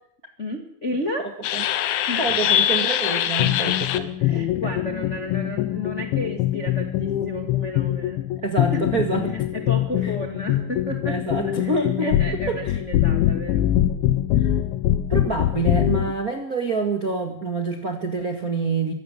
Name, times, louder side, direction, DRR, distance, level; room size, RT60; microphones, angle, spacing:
voice 1, 0.4-1.4 2.1-2.4 4.2-8.2 8.7-8.8 9.3-11.7 12.0-13.7, left 1 dB, 60° left, 3 dB, 0.7 m, -32 dB
voice 2, 1.2-1.6 2.2-4.8 8.4-9.4 11.1-12.2 12.6-12.8 14.4-14.5 15.1-18.9, right 3 dB, 75° right, 3 dB, 0.8 m, -27 dB
sound 1, 1.4-16.1, left 12 dB, 85° left, 3.5 m, -23 dB
24.0 x 15.5 x 7.5 m, 0.69 s
omnidirectional pair, 5.2 m